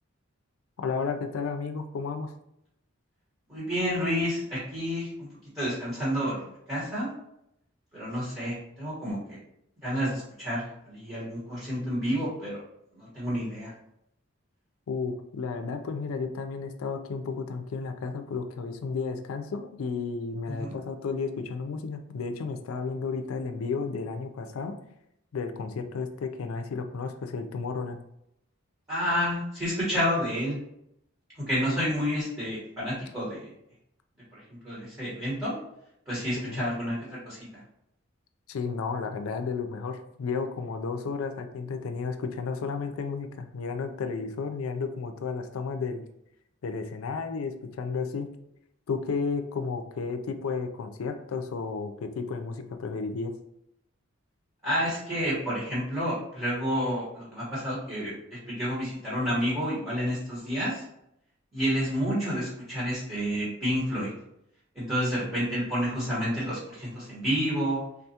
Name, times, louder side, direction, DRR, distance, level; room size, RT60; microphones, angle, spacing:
voice 1, 0.8-2.3 14.9-24.8 25.3-28.0 36.4-36.6 38.5-46.0 46.6-48.3 48.9-53.3, left 4 dB, 85° left, 7 dB, 0.4 m, -33 dB
voice 2, 3.5-5.3 5.5-7.1 7.9-9.4 9.8-12.6 13.0-13.7 20.5-20.7 28.9-30.6 31.4-33.5 34.3-35.5 36.1-37.0 37.2-37.4 54.6-60.8 61.5-64.1 64.7-67.8, equal, 15° right, -10 dB, 1.1 m, -29 dB
3.6 x 2.3 x 2.8 m, 0.78 s
head